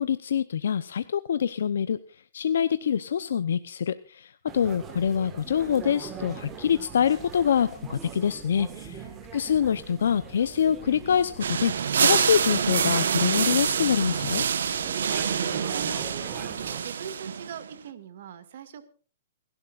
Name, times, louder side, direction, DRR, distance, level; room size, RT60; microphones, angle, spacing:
voice 1, 0.0-2.0 2.3-14.4, left 8 dB, 75° left, 13 dB, 0.7 m, -25 dB
sound 1, 4.5-16.8, right 6 dB, 15° right, 1.7 m, -42 dB
voice 2, 8.7-9.3 14.9-18.8, right 8 dB, 55° right, 10 dB, 2.1 m, -43 dB
sound 2, 11.4-17.7, right 7 dB, 85° right, 1.2 m, -26 dB
29.5 x 12.0 x 2.5 m, 0.38 s
hypercardioid pair, 165°, 0 cm